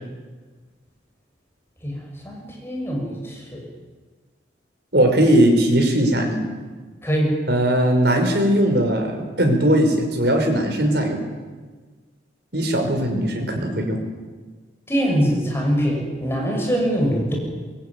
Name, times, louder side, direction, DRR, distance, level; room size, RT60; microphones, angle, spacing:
voice 1, 2.2-3.6 7.0-7.3 13.1-13.2 14.9-17.4, equal, 15° left, 0 dB, 6.5 m, -23 dB
voice 2, 4.9-6.4 7.5-11.2 12.5-14.0, right 1 dB, 60° right, 4 dB, 5.5 m, -19 dB
23.5 x 22.0 x 9.5 m, 1.4 s
head